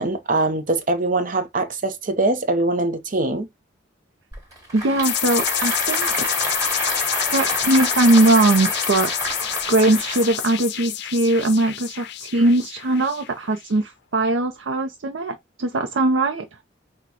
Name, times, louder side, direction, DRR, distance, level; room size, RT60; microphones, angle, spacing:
voice 1, 0.0-3.5, right 2 dB, 45° right, 0.8 m, -22 dB
Applause / Crowd, 4.3-10.5, right 1 dB, 20° right, 2.1 m, -28 dB
voice 2, 4.7-6.3 7.3-9.1 9.7-16.5, right 2 dB, 80° right, 0.6 m, -20 dB
sound 1, 5.0-13.6, left 13 dB, 65° left, 0.5 m, -27 dB
6.1 x 2.3 x 2.8 m
head